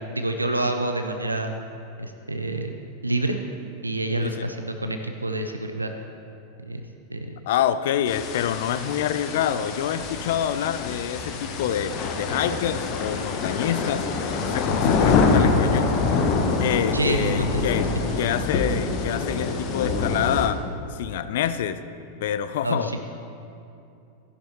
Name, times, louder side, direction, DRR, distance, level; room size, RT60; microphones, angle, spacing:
voice 1, 0.2-1.5 2.0-2.7 3.0-3.4 3.8-5.9 6.6-6.8 7.1-7.4 14.7-14.9 16.9-17.7 22.6-23.0, right 2 dB, 85° right, 6 dB, 0.5 m, -27 dB
voice 2, 7.5-14.0 14.4-15.9 16.6-17.9 18.2-20.6 20.9-21.8 22.2-22.9, left 10 dB, 55° left, 13 dB, 0.4 m, -26 dB
sound 1, 8.1-20.5, left 4 dB, 40° left, 1.0 m, -25 dB
13.5 x 11.0 x 3.1 m, 2.7 s
figure-of-eight pair, 90°, 0 cm